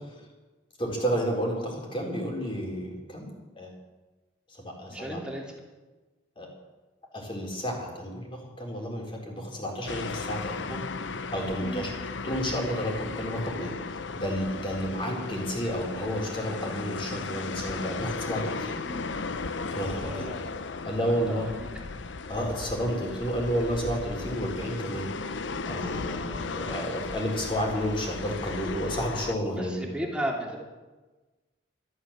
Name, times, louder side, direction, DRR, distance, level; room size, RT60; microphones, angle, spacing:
voice 1, 0.8-3.3 3.6-3.7 4.6-5.2 6.4-6.5 7.1-10.8 11.3-11.9 12.2-18.8 19.7-20.3 20.8-21.4 22.3-25.3 25.7-29.8, equal, 30° left, 0 dB, 3.9 m, -31 dB
voice 2, 4.9-5.5 11.6-11.9 18.8-19.2 19.8-20.5 21.0-21.7 26.1-26.4 29.5-30.6, equal, 5° right, -2 dB, 2.8 m, -36 dB
sound 1, 9.9-29.3, left 4 dB, 75° left, 0.7 m, -36 dB
13.0 x 13.0 x 7.4 m, 1.2 s
head